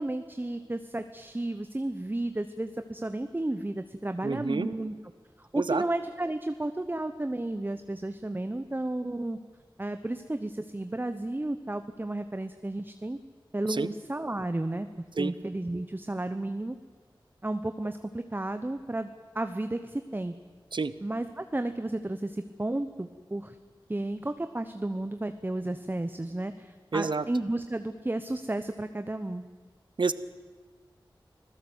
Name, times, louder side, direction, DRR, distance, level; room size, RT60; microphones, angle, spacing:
voice 1, 0.0-4.9 5.4-9.4 9.8-13.2 13.5-14.9 15.2-16.8 17.4-19.1 19.3-20.3 21.0-23.6 23.9-29.4, right 1 dB, 25° right, 9 dB, 0.9 m, -32 dB
voice 2, 4.2-4.7 5.6-5.8 13.7-13.9 15.2-15.3 20.7-20.9 26.9-27.3 30.0-30.1, right 4 dB, 65° right, 15 dB, 0.8 m, -28 dB
26.0 x 16.0 x 8.0 m, 1.5 s
wide cardioid pair, 75°, 9 cm